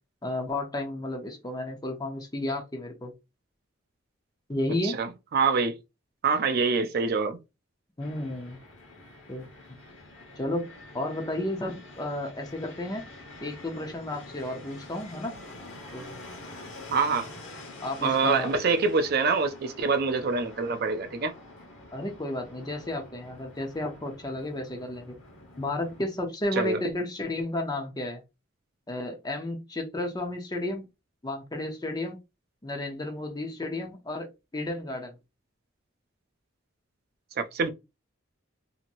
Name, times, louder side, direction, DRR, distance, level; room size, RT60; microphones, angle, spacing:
voice 1, 0.2-3.1 4.5-5.0 8.0-8.6 9.3-9.5 10.4-10.7 10.9-13.1 13.4-15.3 15.9-16.2 17.8-18.5 21.9-25.2 25.6-28.2 28.9-30.9 31.2-32.2 32.6-35.1, left 1 dB, 20° left, 0.7 m, -32 dB
voice 2, 4.8-5.8 6.2-7.4 16.9-17.3 18.0-21.3 26.5-26.8 37.4-37.7, right 4 dB, 50° right, 0.4 m, -25 dB
Fixed-wing aircraft airplane, 8.0-26.0, left 2 dB, 75° left, 1.1 m, -47 dB
2.9 x 2.8 x 2.5 m
head